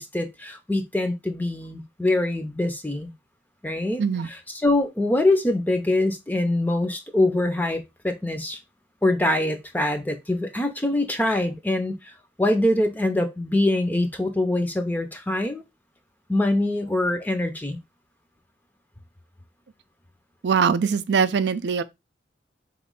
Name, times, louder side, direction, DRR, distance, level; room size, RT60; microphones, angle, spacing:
voice 1, 0.0-3.1 3.6-4.0 4.6-8.6 9.0-15.6 16.3-17.8, left 1 dB, 10° left, 0.5 m, -24 dB
voice 2, 20.4-21.8, right 6 dB, 75° right, 0.4 m, -22 dB
4.3 x 3.0 x 3.7 m
head